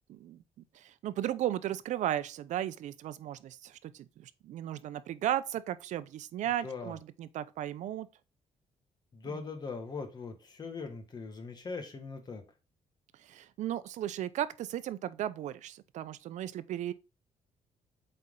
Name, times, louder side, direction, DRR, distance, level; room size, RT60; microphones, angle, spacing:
voice 1, 0.1-0.4 0.7-8.1 9.2-9.4 13.2-16.9, right 12 dB, 75° right, 0.6 m, -35 dB
voice 2, 6.6-6.9 9.1-12.4, left 4 dB, 35° left, 1.6 m, -40 dB
7.8 x 4.4 x 3.7 m
cardioid pair, 135°, 12 cm